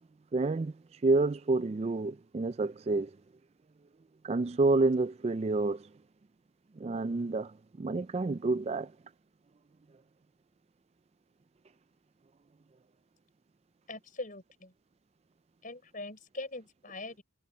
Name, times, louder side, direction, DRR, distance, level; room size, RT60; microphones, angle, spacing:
voice 1, 0.3-0.7 1.0-3.1 4.2-5.9 6.8-8.9, right 3 dB, 30° right, 0.3 m, -29 dB
voice 2, 13.9-14.7 15.6-17.2, left 2 dB, 40° left, 5.3 m, -42 dB
head